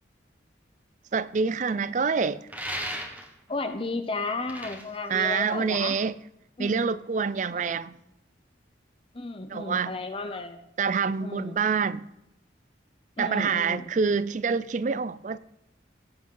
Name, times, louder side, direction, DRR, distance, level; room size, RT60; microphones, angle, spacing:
voice 1, 1.1-2.5 5.1-6.1 6.6-8.0 9.5-10.0 10.8-12.0 13.2-15.4, right 5 dB, 40° right, 0.4 m, -26 dB
sound 1, 2.5-3.5 4.3-6.0, equal, 10° right, 1.3 m, -36 dB
voice 2, 3.5-6.0 6.6-6.8 7.6-7.8 9.1-10.6 11.2-11.6 13.2-13.9, left 3 dB, 30° left, 0.8 m, -33 dB
17.0 x 7.9 x 3.9 m
head